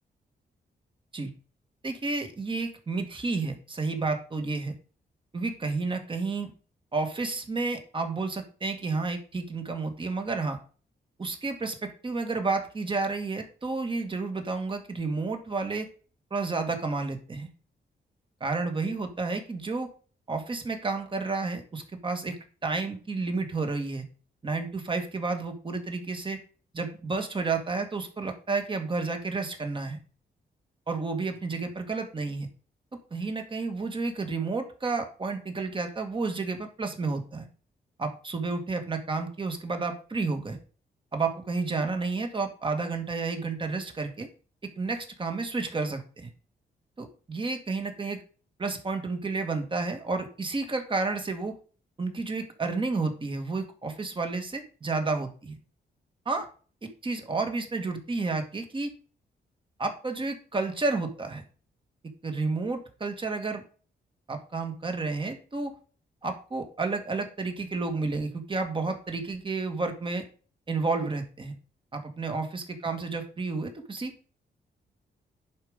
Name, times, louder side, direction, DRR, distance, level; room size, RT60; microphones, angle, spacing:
voice 1, 1.8-4.7 5.3-6.5 6.9-10.6 11.2-15.9 16.3-17.5 18.4-19.9 20.3-24.0 24.4-26.4 26.7-30.0 30.9-32.5 33.1-37.5 38.0-40.6 41.1-44.3 44.8-46.3 47.0-48.2 48.6-51.5 52.0-55.6 56.3-56.5 56.8-58.9 59.8-61.4 62.2-63.6 64.3-65.7 66.2-70.2 70.7-71.5 71.9-74.1, right 3 dB, 30° right, 5 dB, 1.8 m, -31 dB
10.5 x 5.3 x 5.1 m, 0.40 s
wide cardioid pair, 125°, 18 cm